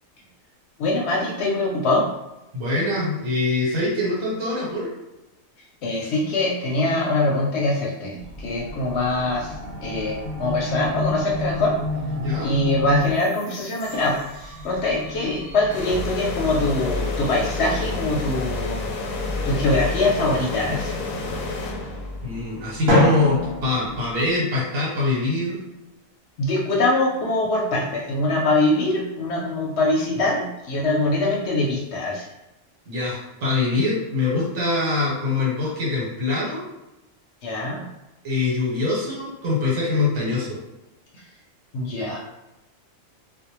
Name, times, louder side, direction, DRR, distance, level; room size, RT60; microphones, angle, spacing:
voice 1, 0.8-2.1 5.8-9.6 9.8-11.7 12.4-18.8 19.4-20.9 26.4-32.3 37.4-37.9 41.7-42.2, left 2 dB, 65° left, -2 dB, 0.7 m, -23 dB
voice 2, 2.5-4.9 12.2-12.5 20.7-20.8 22.2-25.6 32.9-36.6 38.2-40.6, left 3 dB, 80° right, -5 dB, 1.3 m, -24 dB
sound 1, 8.2-24.4, left 1 dB, 35° right, 0.5 m, -32 dB
sound 2, 15.7-22.4, left 3 dB, 90° left, 1.0 m, -31 dB
Drum, 22.9-24.8, left 1 dB, 55° right, 1.0 m, -22 dB
2.5 x 2.1 x 2.9 m, 0.97 s
omnidirectional pair, 1.4 m